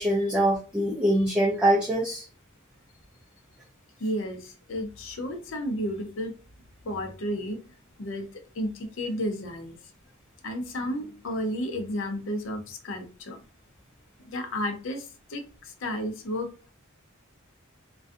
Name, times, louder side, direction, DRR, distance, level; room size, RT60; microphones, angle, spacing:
voice 1, 0.0-2.2, right 1 dB, 5° right, -4 dB, 0.4 m, -23 dB
voice 2, 4.0-6.3 6.8-7.6 8.0-9.8 10.4-13.4 14.2-16.7, equal, 60° left, 5 dB, 0.5 m, -32 dB
2.5 x 2.2 x 2.4 m, 0.35 s
head